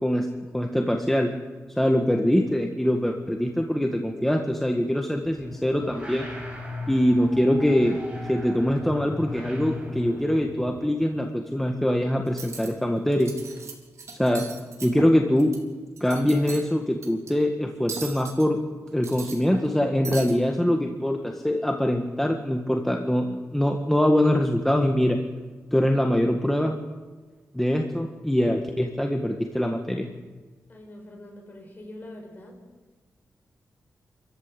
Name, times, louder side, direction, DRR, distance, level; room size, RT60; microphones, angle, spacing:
voice 1, 0.5-1.3 1.8-6.3 6.9-8.0 8.3-13.3 14.2-14.5 14.8-15.5 16.0-18.6 18.9-25.2 25.7-26.8 27.5-30.1, equal, 5° left, 3 dB, 1.7 m, -23 dB
sound 1, 5.3-10.8, left 1 dB, 20° right, 5.9 m, -37 dB
Cutlery silverware, 12.3-12.7 13.1-13.7 14.0-15.6 15.9-16.6 17.0-17.3 17.9-18.4 18.9-19.8 20.0-20.3, right 4 dB, 70° right, 4.0 m, -38 dB
voice 2, 30.7-32.6, left 1 dB, 35° left, 0 dB, 7.4 m, -43 dB
27.5 x 14.5 x 8.5 m, 1.3 s
wide cardioid pair, 105°, 5 cm